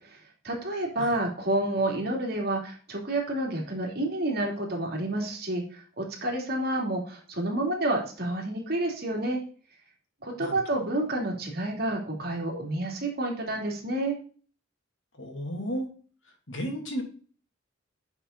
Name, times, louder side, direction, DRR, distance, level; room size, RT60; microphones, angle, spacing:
voice 1, 0.4-9.4 10.2-14.1, right 1 dB, 55° right, 0 dB, 2.9 m, -29 dB
voice 2, 15.2-15.9 16.5-17.0, equal, 75° left, 2 dB, 2.7 m, -33 dB
9.9 x 6.0 x 4.0 m, 0.42 s
head